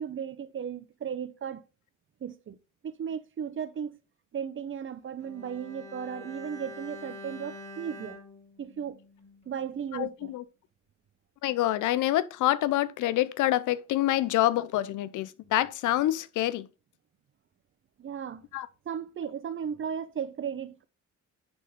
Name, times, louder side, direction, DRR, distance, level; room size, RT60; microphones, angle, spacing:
voice 1, 0.0-1.6 2.2-2.6 2.8-4.0 4.3-8.2 8.6-9.0 9.5-10.3 18.0-18.4 18.9-20.8, right 8 dB, 40° right, 0.7 m, -35 dB
Bowed string instrument, 5.2-9.6 9.9-10.0, left 1 dB, 20° left, 2.7 m, -46 dB
voice 2, 9.9-10.4 11.4-16.7 18.5-18.7, left 14 dB, 80° left, 0.6 m, -27 dB
9.7 x 3.9 x 4.1 m
cardioid pair, 90°, 30 cm